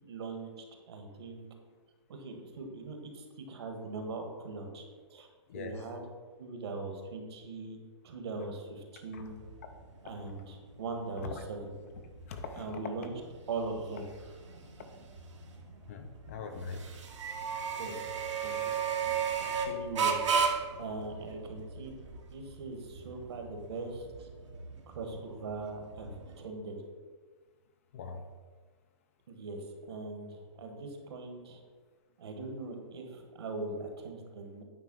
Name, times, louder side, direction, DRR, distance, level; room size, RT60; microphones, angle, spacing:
voice 1, 0.1-1.5 2.1-4.8 5.1-5.3 5.5-6.0 6.4-7.8 8.0-9.4 10.0-11.6 12.6-13.1 13.5-14.0 17.7-18.0 18.4-18.7 19.0-20.5 20.8-22.1 22.3-24.3 24.9-26.8 29.3-31.6 32.2-34.6, right 3 dB, 60° right, 4 dB, 1.5 m, -41 dB
voice 2, 5.5-5.8 9.1-9.3 11.3-11.4 12.3-12.7 14.8-15.1 15.9-16.9 27.9-28.2, left 5 dB, 30° left, 6 dB, 0.4 m, -42 dB
sound 1, 9.2-26.4, right 6 dB, 75° right, 1.3 m, -36 dB
9.1 x 3.3 x 6.1 m, 1.5 s
hypercardioid pair, 170°, 15 cm